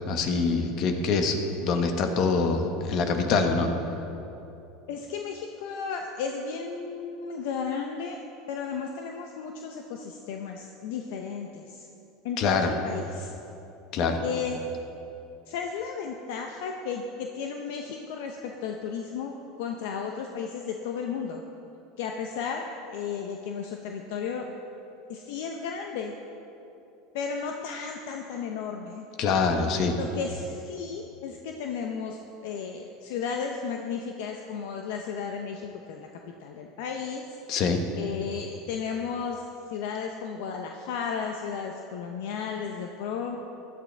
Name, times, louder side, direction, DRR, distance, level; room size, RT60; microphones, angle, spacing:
voice 1, 0.1-3.7 12.4-12.7 13.9-14.2 29.2-30.0 37.5-37.8, left 4 dB, 55° left, 5 dB, 1.4 m, -25 dB
voice 2, 4.9-8.2 8.5-11.9 12.2-13.3 14.2-14.6 15.5-21.4 22.0-24.5 25.1-26.1 27.1-29.1 29.9-36.1 36.4-37.4 38.0-39.4 39.7-43.4, left 6 dB, 70° left, 3 dB, 0.8 m, -34 dB
15.5 x 11.5 x 3.5 m, 2.8 s
hypercardioid pair, 100°, 0 cm